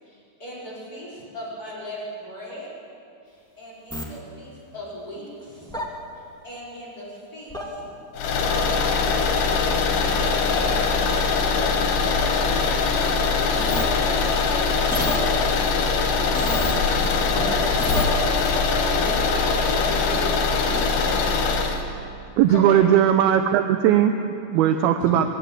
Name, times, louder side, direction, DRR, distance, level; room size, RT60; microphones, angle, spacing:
voice 1, 0.0-2.7 3.3-5.8 6.1-7.9 8.4-9.5 10.2-17.0 17.3-17.4 22.5-22.8 24.7-25.2, equal, 20° left, -6 dB, 5.2 m, -39 dB
sound 1, 3.9-4.0 5.7-5.8 7.5-7.6 12.1-13.1 13.6-15.8 16.3-18.6, left 1 dB, ahead, 1.1 m, -30 dB
sound 2, 8.2-21.8, left 4 dB, 90° left, 4.1 m, -22 dB
voice 2, 18.9-21.5, right 1 dB, 55° right, -5 dB, 8.9 m, -34 dB
voice 3, 22.4-24.1 24.5-25.2, right 10 dB, 80° right, 7 dB, 2.4 m, -18 dB
22.5 x 16.5 x 8.7 m, 2.6 s
omnidirectional pair, 4.9 m